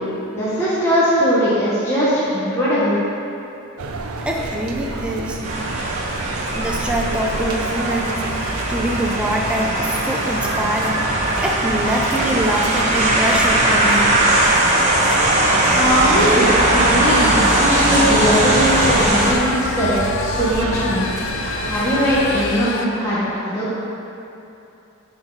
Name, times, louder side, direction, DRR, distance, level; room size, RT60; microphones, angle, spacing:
voice 1, 0.3-3.0 15.7-21.1 21.6-23.8, equal, 15° left, -11 dB, 1.2 m, -20 dB
sound 1, 3.8-22.5, right 3 dB, 80° right, 0.5 m, -30 dB
voice 2, 4.2-5.4 6.5-14.2, right 1 dB, 5° right, -1 dB, 0.6 m, -24 dB
sound 2, 5.4-19.3, right 1 dB, 30° right, 0.9 m, -19 dB
sound 3, 17.0-22.9, left 4 dB, 55° left, 0.5 m, -28 dB
10.0 x 4.3 x 4.0 m, 2.9 s
head